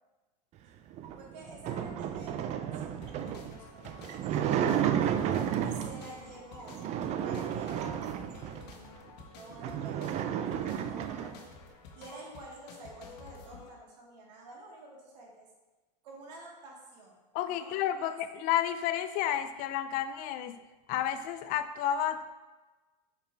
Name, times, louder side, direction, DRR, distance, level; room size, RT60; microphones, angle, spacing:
sound 1, 0.9-6.1 6.7-8.7 9.2-9.3 9.5-11.4, right 9 dB, 30° right, 0.4 m, -32 dB
voice 1, 1.2-5.3 5.6-6.8 7.2-8.0 8.2-9.1 9.3-11.5 12.0-15.5 16.0-17.2 17.4-18.2, right 2 dB, 75° right, -2 dB, 2.2 m, -49 dB
sound 2, 3.0-13.7, left 4 dB, 70° left, 1.4 m, -51 dB
voice 2, 17.3-20.6 20.9-22.4, left 11 dB, 40° left, 11 dB, 0.5 m, -31 dB
5.9 x 5.1 x 4.4 m, 1.2 s
supercardioid pair, 125°, 21 cm